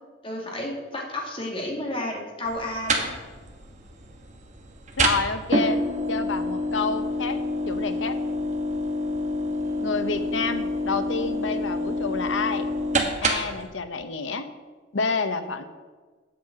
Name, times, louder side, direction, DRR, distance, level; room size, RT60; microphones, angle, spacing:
voice 1, 0.2-3.1, left 1 dB, 30° left, -1 dB, 2.2 m, -31 dB
sound 1, 2.5-13.7, equal, 40° right, 1.3 m, -28 dB
voice 2, 5.0-5.8 6.1-7.4 7.7-8.2 9.8-12.7 13.2-14.5 14.9-15.6, left 4 dB, 80° left, 9 dB, 0.9 m, -28 dB
8.4 x 7.5 x 7.6 m, 1.4 s
head